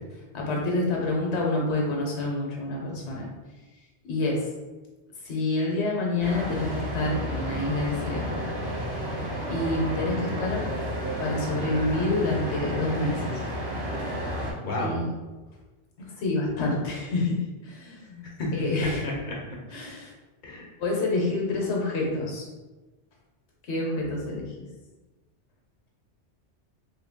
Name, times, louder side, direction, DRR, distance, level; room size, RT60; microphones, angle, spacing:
voice 1, 0.3-3.3 4.1-4.5 5.2-8.5 9.5-10.7 11.2-13.4 14.8-15.1 16.0-19.1 19.7-20.1 20.8-22.5 23.7-24.7, left 2 dB, 75° left, -1 dB, 1.1 m, -28 dB
sound 1, 6.2-14.5, equal, 25° right, 0.8 m, -31 dB
voice 2, 14.6-15.0 18.4-19.6 20.4-20.7, left 1 dB, 50° left, -2 dB, 0.8 m, -31 dB
3.1 x 2.2 x 3.5 m, 1.2 s
omnidirectional pair, 1.2 m